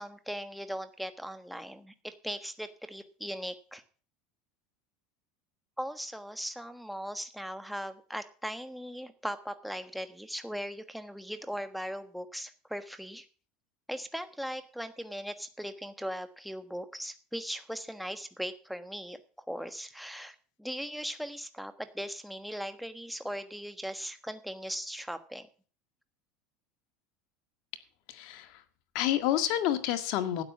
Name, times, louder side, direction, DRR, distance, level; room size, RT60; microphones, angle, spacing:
voice 1, 0.0-3.8 5.8-13.3 13.9-19.2 19.5-25.5, equal, ahead, 9 dB, 1.3 m, -39 dB
voice 2, 28.1-28.5 28.9-30.4, left 12 dB, 65° left, 9 dB, 1.8 m, -29 dB
12.5 x 9.0 x 6.1 m, 0.39 s
supercardioid pair, 115°, 0 cm